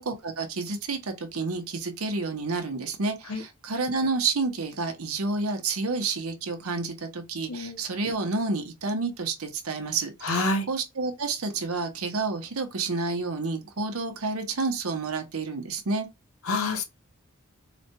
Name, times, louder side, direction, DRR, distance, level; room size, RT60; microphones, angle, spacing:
voice 1, 0.0-16.1, right 3 dB, 85° right, 0.9 m, -30 dB
voice 2, 10.2-10.7 16.5-16.8, left 2 dB, 75° left, 0.7 m, -27 dB
4.1 x 2.2 x 2.8 m
head